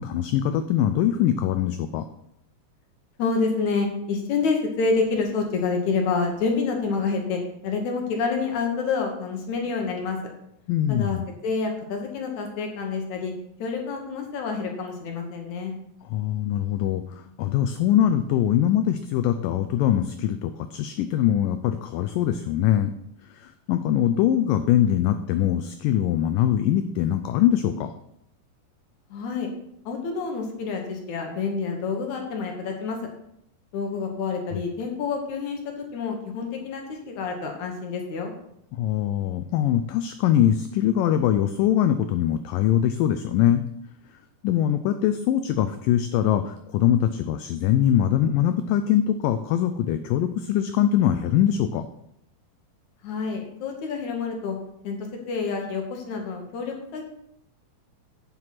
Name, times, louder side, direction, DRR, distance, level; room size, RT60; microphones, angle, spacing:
voice 1, 0.0-2.0 10.7-11.3 16.1-17.0 17.4-22.9 23.4-27.9 38.8-43.6 44.4-51.8, left 11 dB, 90° left, 10 dB, 1.9 m, -22 dB
voice 2, 3.2-10.2 10.9-11.2 11.4-13.3 13.6-15.7 29.1-29.5 29.9-33.0 33.7-38.3 53.0-54.6 54.8-55.0 55.3-57.0, left 4 dB, 65° left, 2 dB, 2.1 m, -28 dB
7.8 x 7.7 x 5.9 m, 0.76 s
omnidirectional pair, 4.5 m